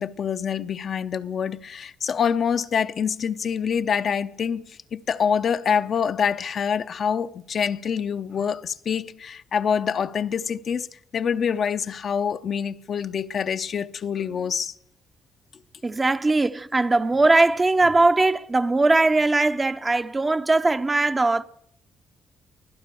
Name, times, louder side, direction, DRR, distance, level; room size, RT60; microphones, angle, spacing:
voice 1, 0.0-4.6 4.9-10.9 11.1-14.7, left 7 dB, 55° left, 0.8 m, -26 dB
voice 2, 15.8-21.4, right 2 dB, 20° right, 0.7 m, -20 dB
24.0 x 16.0 x 7.0 m
cardioid pair, 90°, 0 cm